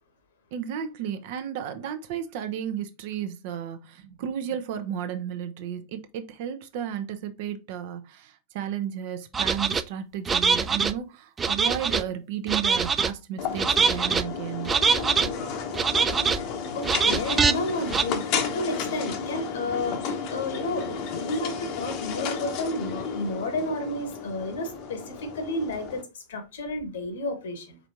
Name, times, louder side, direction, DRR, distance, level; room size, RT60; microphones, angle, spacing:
voice 1, 0.5-14.7, right 9 dB, 50° right, 0.6 m, -33 dB
sound 1, 9.3-9.8 10.3-10.9 11.4-12.0 12.5-13.1 13.6-14.2 14.7-15.3 15.7-16.4 16.8-17.5 17.9-18.0, right 5 dB, 20° right, 0.3 m, -23 dB
sound 2, 13.4-26.0, left 6 dB, 45° left, 0.9 m, -33 dB
voice 2, 16.7-18.2 18.5-27.8, left 2 dB, 60° left, 1.2 m, -31 dB
5.0 x 3.4 x 2.8 m
figure-of-eight pair, 90°, 0 cm